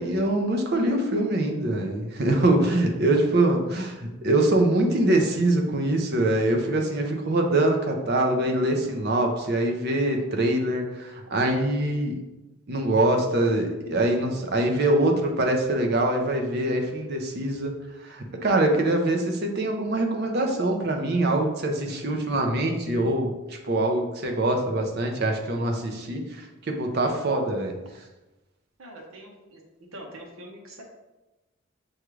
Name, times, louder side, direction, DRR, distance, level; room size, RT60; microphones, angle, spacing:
voice 1, 0.0-12.2 12.7-17.7 18.0-27.7, right 1 dB, 50° right, 3 dB, 0.6 m, -24 dB
voice 2, 28.8-29.6 29.9-30.8, right 1 dB, 80° right, 0 dB, 0.8 m, -43 dB
6.3 x 2.4 x 3.1 m, 1.1 s
head